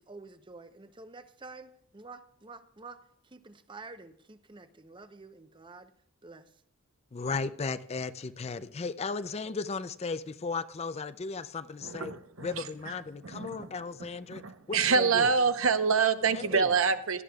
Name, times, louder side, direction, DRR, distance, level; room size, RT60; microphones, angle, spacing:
voice 1, 0.0-3.0 3.2-5.9 6.2-6.5, right 3 dB, 25° right, 10 dB, 0.7 m, -49 dB
voice 2, 7.1-12.1 12.4-15.3 16.3-16.7, left 4 dB, 30° left, 13 dB, 0.4 m, -35 dB
voice 3, 11.8-12.6 13.2-13.7 14.3-17.2, right 5 dB, 75° right, 10 dB, 0.8 m, -26 dB
16.5 x 12.0 x 2.3 m, 0.70 s
head